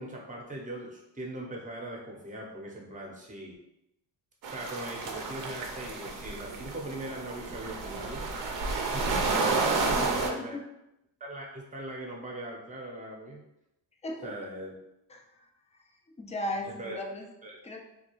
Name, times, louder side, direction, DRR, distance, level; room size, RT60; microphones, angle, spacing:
voice 1, 0.0-3.6 4.5-10.6 11.2-13.4 14.2-14.7 16.7-17.0 17.4-17.6, right 1 dB, 15° right, -2 dB, 0.8 m, -40 dB
sound 1, 4.4-10.3, right 3 dB, 45° right, 0.6 m, -31 dB
voice 2, 9.8-10.6 14.0-14.4 15.1-17.3 17.6-17.8, left 1 dB, 15° left, 2 dB, 0.4 m, -38 dB
2.3 x 2.3 x 3.0 m, 0.87 s
supercardioid pair, 75°, 46 cm